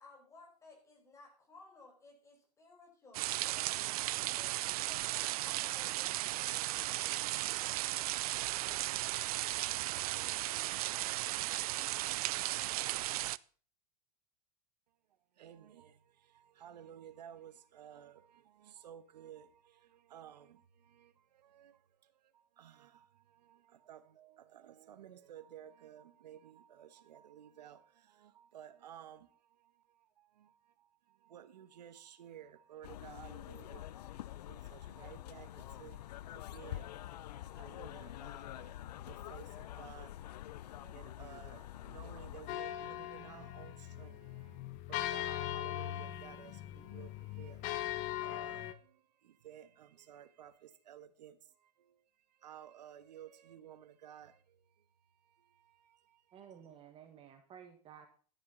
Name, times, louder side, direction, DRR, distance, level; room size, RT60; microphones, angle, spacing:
voice 1, 0.0-7.7, left 3 dB, 15° left, 4.9 m, -59 dB
sound 1, 3.1-13.4, right 16 dB, 65° right, 0.5 m, -35 dB
voice 2, 15.3-54.8 55.1-56.6, right 10 dB, 85° right, 1.4 m, -55 dB
sound 2, 32.8-42.6, left 13 dB, 80° left, 0.6 m, -47 dB
sound 3, 42.5-48.7, left 14 dB, 35° left, 1.2 m, -40 dB
voice 3, 56.3-58.1, right 8 dB, 25° right, 1.7 m, -54 dB
12.5 x 10.5 x 4.0 m
supercardioid pair, 145°, 21 cm